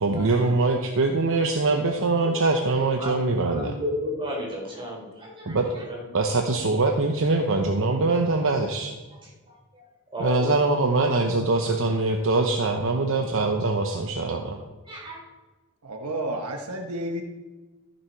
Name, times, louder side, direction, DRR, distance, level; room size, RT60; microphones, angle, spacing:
voice 1, 0.0-3.8 5.5-5.7 6.1-8.9 10.2-14.6, right 3 dB, 65° right, 4 dB, 0.8 m, -23 dB
voice 2, 2.0-2.3 2.9-3.1 3.4-6.0 9.2-9.3 10.1-10.5 14.9-15.2, left 1 dB, 25° right, -3 dB, 3.7 m, -33 dB
voice 3, 15.8-17.2, right 1 dB, 85° right, 3 dB, 1.2 m, -31 dB
14.0 x 7.3 x 4.6 m, 1.2 s
head